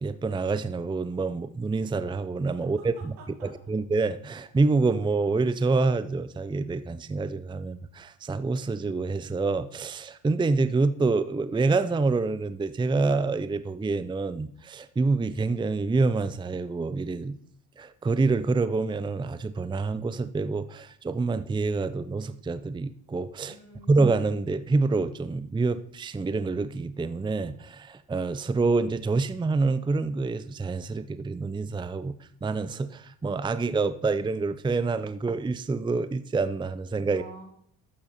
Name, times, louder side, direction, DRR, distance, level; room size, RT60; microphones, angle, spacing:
voice 1, 0.0-3.1 3.7-17.4 17.8-23.5 23.9-32.2 32.4-37.2, right 3 dB, 10° right, 14 dB, 0.5 m, -27 dB
voice 2, 2.8-3.7 23.4-23.9 37.1-37.4, right 3 dB, 80° right, 0 dB, 4.0 m, -48 dB
12.0 x 8.7 x 4.3 m, 0.64 s
supercardioid pair, 75°, 39 cm